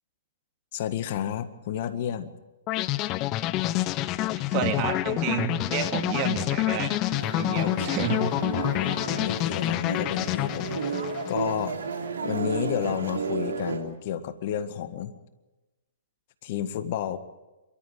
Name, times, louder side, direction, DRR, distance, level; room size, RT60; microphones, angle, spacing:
voice 1, 0.7-2.3 4.6-4.7 7.6-7.9 8.5-11.7 12.2-15.1 16.4-17.2, left 10 dB, 50° left, 11 dB, 1.7 m, -31 dB
sound 1, 2.7-11.7, left 16 dB, 30° left, 0.7 m, -28 dB
voice 2, 4.3-7.0 7.3-8.3, right 9 dB, 35° right, 6 dB, 2.4 m, -30 dB
sound 2, 7.1-13.8, right 5 dB, 75° right, 3.3 m, -33 dB
27.5 x 13.5 x 9.3 m, 1.1 s
hypercardioid pair, 120°, 0 cm